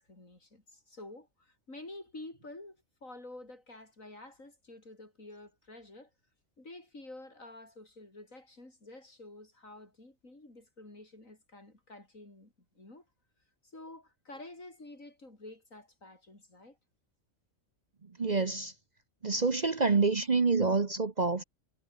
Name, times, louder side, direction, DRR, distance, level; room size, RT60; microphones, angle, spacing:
voice 1, 0.0-6.1 6.6-13.0 13.6-16.8, left 2 dB, 75° left, 6.7 m, -50 dB
voice 2, 18.2-18.7 19.2-21.4, right 4 dB, 35° right, 1.0 m, -27 dB
omnidirectional pair, 1.4 m